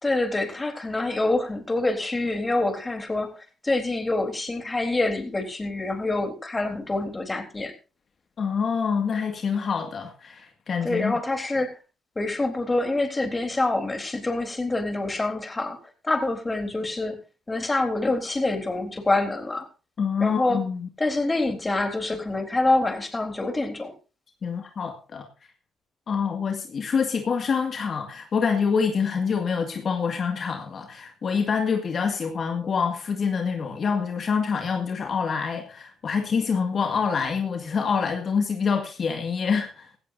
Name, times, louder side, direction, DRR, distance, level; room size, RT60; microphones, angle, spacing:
voice 1, 0.0-7.7 10.8-11.8 12.2-15.8 16.0-17.2 17.5-19.7 20.2-20.6 21.0-23.9, left 2 dB, 20° left, 3.7 m, -26 dB
voice 2, 8.4-11.1 20.0-20.9 24.4-25.3 26.1-39.9, left 6 dB, 50° left, 2.0 m, -26 dB
17.0 x 14.5 x 2.7 m
cardioid pair, 90°, 0 cm